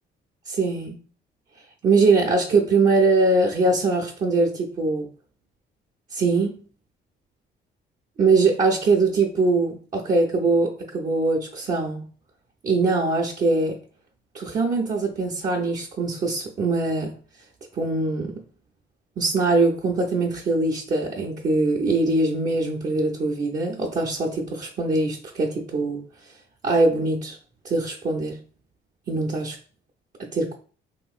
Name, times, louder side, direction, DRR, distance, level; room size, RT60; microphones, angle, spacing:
voice 1, 0.5-1.0 1.8-5.1 6.1-6.6 8.2-12.0 12.6-13.8 14.3-17.1 17.7-18.4 19.2-26.0 26.6-27.4 27.6-28.4 29.1-29.6 30.2-30.5, right 3 dB, 40° right, -3 dB, 0.6 m, -22 dB
3.0 x 2.8 x 2.3 m, 0.38 s
cardioid pair, 90°, 20 cm